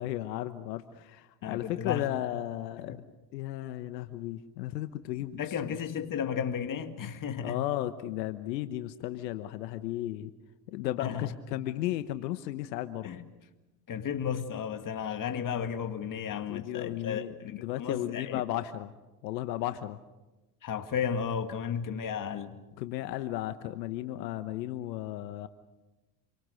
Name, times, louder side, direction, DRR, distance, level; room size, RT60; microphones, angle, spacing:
voice 1, 0.0-3.0 3.3-5.8 7.4-10.3 10.7-13.1 16.5-18.9 19.2-20.0 22.8-25.5, left 14 dB, 85° left, 1.2 m, -35 dB
voice 2, 1.4-2.4 2.9-3.0 5.4-7.6 11.0-11.3 13.0-13.2 13.9-18.4 20.6-22.6, left 7 dB, 40° left, 2.2 m, -34 dB
28.0 x 24.0 x 6.5 m
hypercardioid pair, 85°, 49 cm